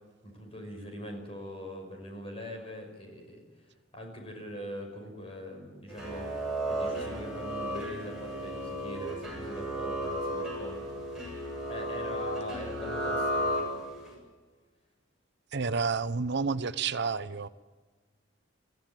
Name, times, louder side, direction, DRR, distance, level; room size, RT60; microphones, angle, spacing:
voice 1, 0.2-3.7 3.9-6.3 6.7-11.4 11.7-13.6, equal, 30° left, 3 dB, 5.9 m, -42 dB
sound 1, 5.9-14.1, equal, ahead, 7.5 m, -34 dB
voice 2, 15.5-17.5, right 5 dB, 60° right, 13 dB, 0.8 m, -30 dB
23.5 x 15.0 x 9.2 m, 1.3 s
head